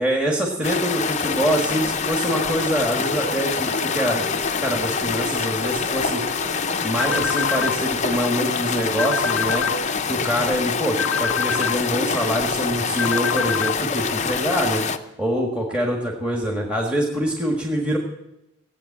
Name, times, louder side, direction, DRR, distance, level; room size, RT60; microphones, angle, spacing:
voice 1, 0.0-4.3 4.6-6.2 6.8-9.7 10.1-14.9 15.2-18.0, equal, 5° right, 0 dB, 1.7 m, -24 dB
sound 1, 0.6-15.0, left 5 dB, 35° left, 0.7 m, -25 dB
sound 2, 2.3-10.0, right 3 dB, 80° right, 1.3 m, -36 dB
sound 3, 7.0-7.8 9.0-9.8 11.0-11.8 13.0-13.8, left 7 dB, 75° left, 0.6 m, -25 dB
17.0 x 8.3 x 8.6 m, 0.90 s
head